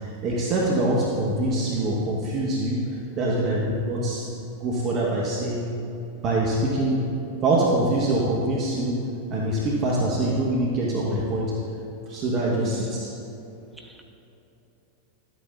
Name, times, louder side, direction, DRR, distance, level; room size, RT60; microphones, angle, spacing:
voice 1, 0.0-4.2 4.5-5.7 6.2-7.1 7.4-9.0 9.3-11.5 12.1-13.1, right 1 dB, 40° right, -3 dB, 1.3 m, -24 dB
voice 2, 12.6-13.1 13.7-14.0, equal, 5° right, 2 dB, 1.0 m, -39 dB
12.0 x 9.2 x 2.6 m, 2.8 s
hypercardioid pair, 95°, 0 cm